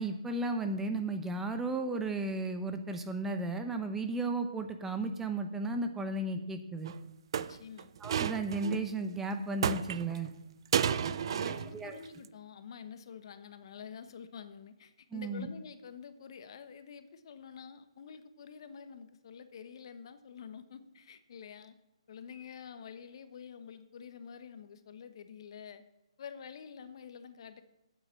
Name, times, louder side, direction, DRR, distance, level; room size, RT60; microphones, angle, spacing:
voice 1, 0.0-6.9 8.0-10.3 11.7-12.0 15.1-15.5, right 2 dB, 5° right, 7 dB, 0.7 m, -34 dB
sound 1, 6.8-6.9 7.3-8.8 9.6-10.3 10.7-11.8 12.1-12.3, right 8 dB, 45° right, 0.6 m, -32 dB
voice 2, 7.4-7.9 10.8-21.7 22.1-25.8 26.2-27.6, left 7 dB, 50° left, 10 dB, 1.1 m, -48 dB
8.9 x 8.0 x 7.5 m, 0.92 s
hypercardioid pair, 150°, 3 cm